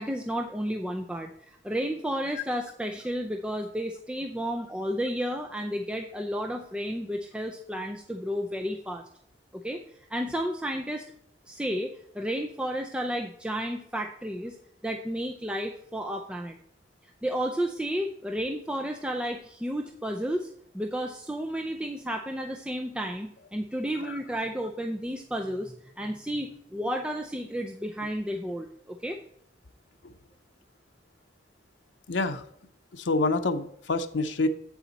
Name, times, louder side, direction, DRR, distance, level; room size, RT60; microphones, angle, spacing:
voice 1, 0.0-9.0 9.6-9.8 10.1-11.0 11.5-14.6 14.8-16.6 17.2-20.5 20.7-29.2, equal, 5° right, 3 dB, 0.4 m, -32 dB
voice 2, 32.1-32.4 32.9-34.5, left 2 dB, 90° left, 7 dB, 0.7 m, -27 dB
8.3 x 7.1 x 4.0 m, 0.70 s
head